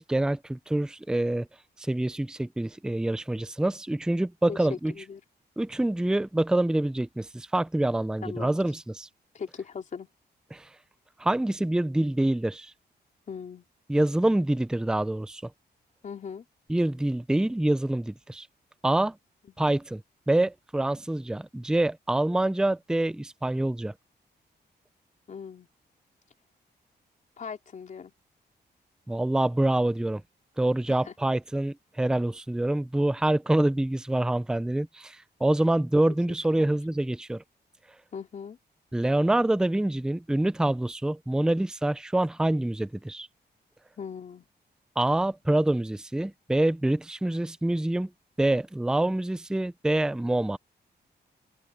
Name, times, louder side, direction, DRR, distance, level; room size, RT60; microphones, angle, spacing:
voice 1, 0.0-1.5 1.8-4.9 5.6-9.1 10.5-10.7 11.2-12.7 13.9-15.4 16.7-18.5 18.8-19.2 19.6-20.0 20.3-23.9 29.1-30.2 30.6-37.4 38.9-43.3 45.0-48.1 48.4-50.6, right 1 dB, 5° right, 0.5 m, -26 dB
voice 2, 4.5-5.2 8.2-8.6 9.3-10.1 13.3-13.7 16.0-16.4 25.3-25.7 27.4-28.1 30.9-31.2 36.5-36.7 38.1-38.6 44.0-44.5, left 6 dB, 45° left, 3.7 m, -39 dB
wide cardioid pair, 160°, 18 cm